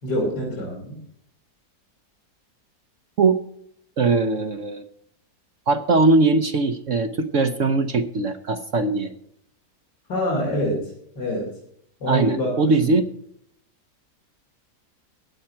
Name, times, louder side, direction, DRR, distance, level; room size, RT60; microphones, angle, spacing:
voice 1, 0.0-1.0 10.1-11.5 12.0-13.0, equal, 85° left, -4 dB, 3.9 m, -26 dB
voice 2, 4.0-4.8 5.7-9.1 12.1-13.1, right 3 dB, 55° right, 7 dB, 1.0 m, -20 dB
16.0 x 9.9 x 4.5 m, 0.69 s
omnidirectional pair, 1.8 m